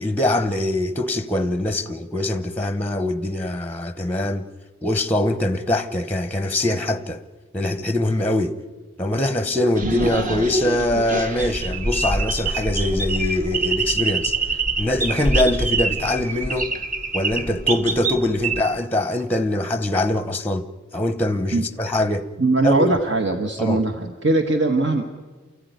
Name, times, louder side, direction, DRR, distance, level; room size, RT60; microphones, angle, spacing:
voice 1, 0.0-4.5 4.8-7.2 7.5-8.6 9.0-16.7 17.1-20.6 20.9-22.3 22.6-22.9 23.6-23.8, left 1 dB, 10° left, 0.9 m, -23 dB
sound 1, 9.8-18.6, right 3 dB, 40° right, 1.4 m, -25 dB
voice 2, 22.4-25.0, right 2 dB, 60° right, 1.4 m, -20 dB
28.5 x 14.5 x 9.4 m
head